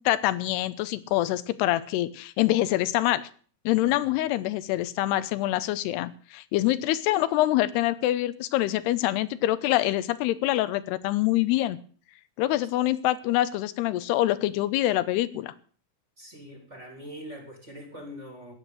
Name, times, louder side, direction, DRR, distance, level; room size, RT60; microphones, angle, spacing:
voice 1, 0.0-3.3 3.7-11.8 12.4-15.5, left 15 dB, 90° left, 15 dB, 2.9 m, -25 dB
voice 2, 16.2-18.5, equal, 20° right, 3 dB, 3.4 m, -43 dB
14.5 x 9.9 x 7.6 m, 0.43 s
omnidirectional pair, 4.6 m